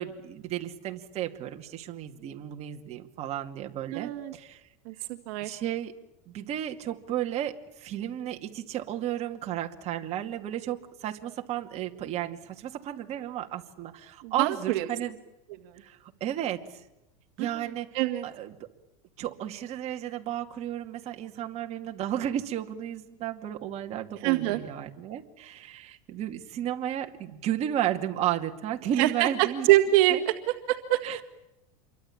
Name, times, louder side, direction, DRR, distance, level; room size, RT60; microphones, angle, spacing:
voice 1, 0.0-4.6 5.4-5.9 6.3-15.2 15.8-16.8 17.4-17.9 18.2-18.7 19.2-29.7 30.1-30.2 31.0-31.2, right 11 dB, 35° right, 4 dB, 2.3 m, -33 dB
voice 2, 3.9-4.3 4.9-5.0 5.3-5.6 14.2-14.9 15.6-15.8 17.4-17.7 17.9-18.3 24.2-24.6 29.0-31.2, right 15 dB, 55° right, 6 dB, 2.0 m, -25 dB
28.0 x 24.0 x 8.8 m, 0.92 s
supercardioid pair, 145°, 18 cm